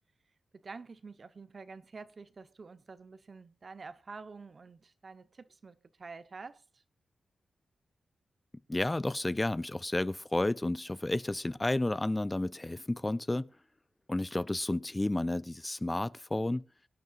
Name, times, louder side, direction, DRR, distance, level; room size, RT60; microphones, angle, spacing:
voice 1, 0.5-6.8, right 4 dB, 50° right, 1.0 m, -48 dB
voice 2, 8.7-13.5 14.1-16.6, left 2 dB, 20° left, 0.5 m, -31 dB
23.5 x 9.2 x 2.5 m
cardioid pair, 65°, 0 cm